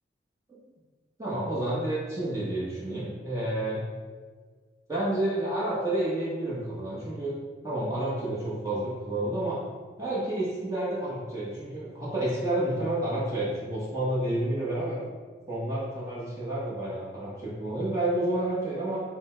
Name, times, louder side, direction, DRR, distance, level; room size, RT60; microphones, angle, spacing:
voice 1, 1.2-3.8 4.9-7.3 7.6-9.6 10.0-15.0 15.5-19.0, right 1 dB, 15° right, -8 dB, 1.0 m, -30 dB
5.6 x 2.1 x 4.4 m, 1.5 s
head